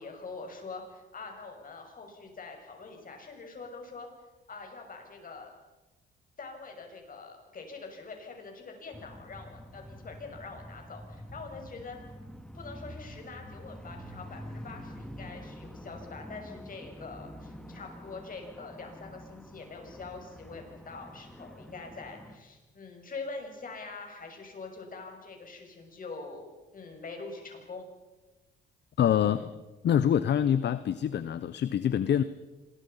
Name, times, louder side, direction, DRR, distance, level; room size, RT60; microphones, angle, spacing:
voice 1, 0.0-4.1 4.5-5.5 6.4-12.0 12.5-27.8, left 4 dB, 45° left, 3 dB, 6.7 m, -44 dB
sound 1, 8.9-22.4, equal, 5° left, 2.5 m, -47 dB
voice 2, 29.0-32.2, left 9 dB, 60° left, 14 dB, 0.9 m, -26 dB
26.5 x 22.0 x 5.7 m, 1.1 s
cardioid pair, 90°, 20 cm